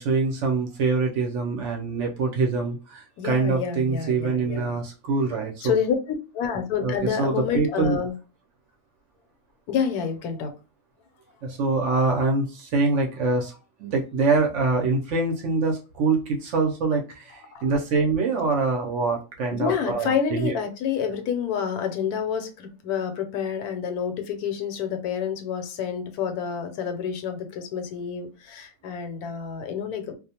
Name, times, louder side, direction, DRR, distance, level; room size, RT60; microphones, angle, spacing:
voice 1, 0.0-5.7 6.8-6.9 7.2-8.0 11.4-20.6, right 4 dB, 65° right, 0.8 m, -24 dB
voice 2, 3.2-4.8 5.6-6.0 6.3-8.1 9.7-10.5 17.5-17.6 19.5-30.2, left 7 dB, 85° left, 1.1 m, -28 dB
2.4 x 2.1 x 2.7 m
omnidirectional pair, 1.6 m